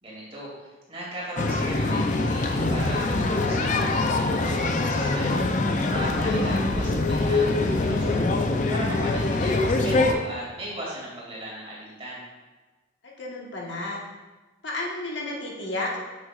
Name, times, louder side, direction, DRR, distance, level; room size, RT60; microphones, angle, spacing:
voice 1, 0.0-5.4 5.8-8.3 8.7-12.2, equal, 30° right, -6 dB, 2.5 m, -37 dB
sound 1, 1.4-10.1, left 2 dB, 40° left, 0.5 m, -24 dB
voice 2, 13.0-14.0 14.6-16.0, left 2 dB, 65° left, -3 dB, 1.3 m, -32 dB
8.1 x 7.9 x 2.4 m, 1.2 s
head